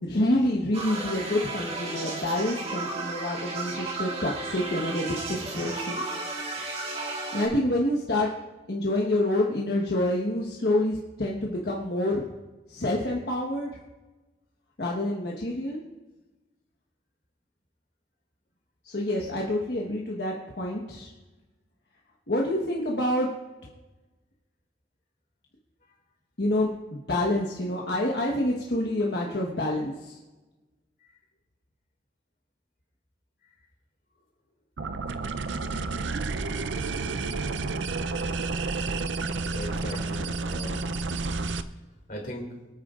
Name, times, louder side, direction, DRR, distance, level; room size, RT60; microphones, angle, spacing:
voice 1, 0.0-6.0 7.3-8.3 8.7-12.2 12.7-13.7 14.8-15.8 18.8-21.1 22.3-23.3 26.4-30.2, left 1 dB, 65° left, -2 dB, 1.3 m, -27 dB
sound 1, 0.7-7.5, right 3 dB, 35° right, 2.1 m, -34 dB
sound 2, 34.8-41.6, right 3 dB, 85° right, 0.6 m, -30 dB
voice 2, 39.5-40.8 42.1-42.5, equal, 50° left, 1 dB, 2.4 m, -38 dB
24.5 x 9.4 x 2.5 m, 1.2 s
head